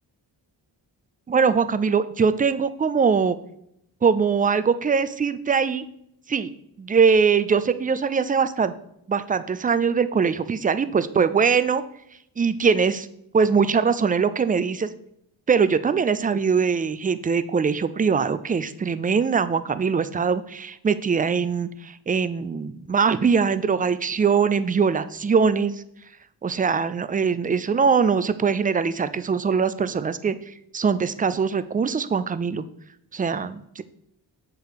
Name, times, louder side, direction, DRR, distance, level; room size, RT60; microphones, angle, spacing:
voice 1, 1.3-3.4 4.0-5.8 6.3-6.5 6.8-8.7 9.1-11.8 12.4-13.1 13.3-14.9 15.5-25.7 26.4-30.3 30.7-32.6 33.1-33.8, right 5 dB, 20° right, 13 dB, 0.3 m, -22 dB
6.6 x 3.1 x 4.7 m, 0.75 s
supercardioid pair, 45°, 48 cm